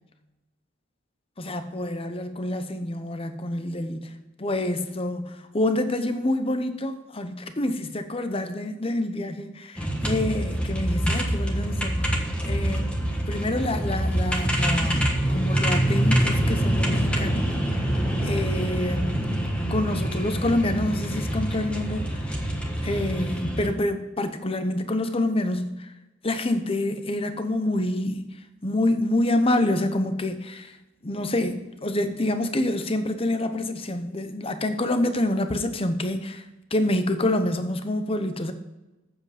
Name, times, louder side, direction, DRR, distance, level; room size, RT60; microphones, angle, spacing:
voice 1, 1.4-12.1 12.4-17.5 18.2-19.1 19.7-22.2 22.8-25.9 26.2-28.3 28.6-30.8 31.0-36.5 36.7-38.5, left 1 dB, 30° left, 9 dB, 0.8 m, -27 dB
sound 1, 9.8-23.7, right 1 dB, 5° left, 1.3 m, -25 dB
8.1 x 7.5 x 5.0 m, 1.0 s
head